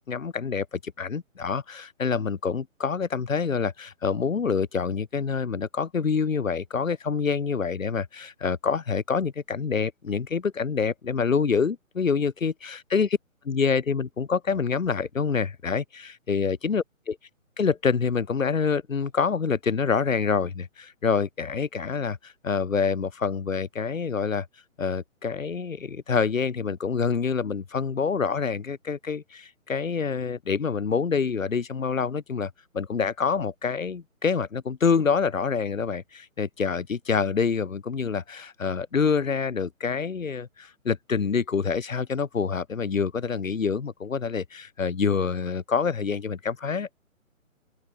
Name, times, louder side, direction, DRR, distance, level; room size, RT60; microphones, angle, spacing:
voice 1, 0.1-13.1 13.4-17.1 17.6-24.5 24.8-46.9, left 5 dB, 70° left, 3.2 m, -26 dB
open air
hypercardioid pair, 155°, 41 cm